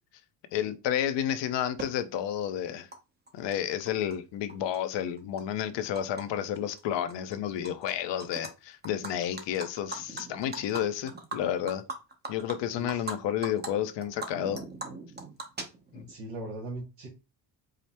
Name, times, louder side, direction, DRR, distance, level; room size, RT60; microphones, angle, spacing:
voice 1, 0.5-2.9 3.3-11.8 12.3-14.6 15.9-16.1, left 10 dB, 75° left, 0.7 m, -31 dB
Animal, 1.8-1.9 2.9-3.0 3.3-4.2 4.5-6.2 6.6-6.8 7.1-7.9 8.2-8.5 8.8-13.2 13.4-13.7 14.0-16.1, right 3 dB, 25° right, 0.8 m, -40 dB
voice 2, 16.1-17.1, right 1 dB, 70° right, 1.4 m, -39 dB
5.0 x 2.0 x 4.2 m
cardioid pair, 115°, 43 cm